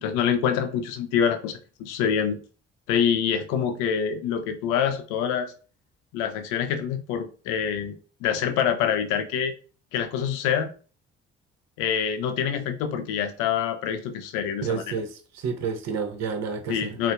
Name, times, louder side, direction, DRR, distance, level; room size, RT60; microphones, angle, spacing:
voice 1, 0.0-2.4 2.9-5.5 6.1-7.9 8.2-9.5 9.9-10.7 11.8-14.8 16.7-17.1, left 8 dB, 75° left, 0.5 m, -26 dB
voice 2, 14.6-17.0, right 6 dB, 55° right, 0.7 m, -30 dB
4.0 x 2.0 x 2.4 m
hypercardioid pair, 45°, 31 cm